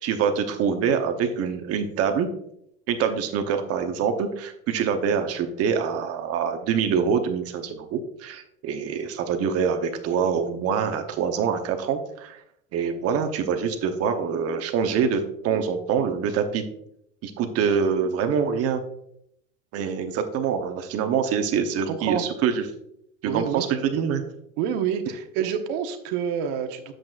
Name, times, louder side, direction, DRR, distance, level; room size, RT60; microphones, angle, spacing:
voice 1, 0.0-2.3 2.9-12.4 12.7-16.7 17.2-18.8 19.7-22.6 23.3-24.2, right 6 dB, 45° right, 6 dB, 1.0 m, -25 dB
voice 2, 21.8-22.2 23.3-23.6 24.6-26.9, right 8 dB, 65° right, 6 dB, 1.2 m, -27 dB
8.6 x 7.7 x 2.5 m, 0.75 s
supercardioid pair, 130°, 35 cm